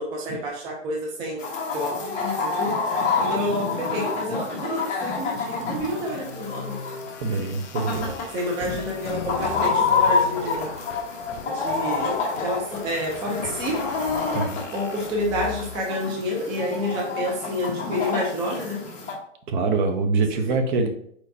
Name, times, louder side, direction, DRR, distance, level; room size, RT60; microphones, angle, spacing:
voice 1, 0.0-1.5 1.7-6.8 8.3-10.7 11.5-13.8 14.7-18.8 20.5-20.6, left 1 dB, 10° right, -1 dB, 0.4 m, -29 dB
Chicken rooster, 1.4-19.1, left 4 dB, 20° left, 1.1 m, -28 dB
sound 1, 4.6-15.8, left 6 dB, 65° left, 0.7 m, -37 dB
voice 2, 7.2-8.1 14.3-14.6 19.5-20.9, right 4 dB, 40° right, 6 dB, 0.8 m, -24 dB
4.4 x 4.2 x 2.7 m, 0.67 s
hypercardioid pair, 130°, 37 cm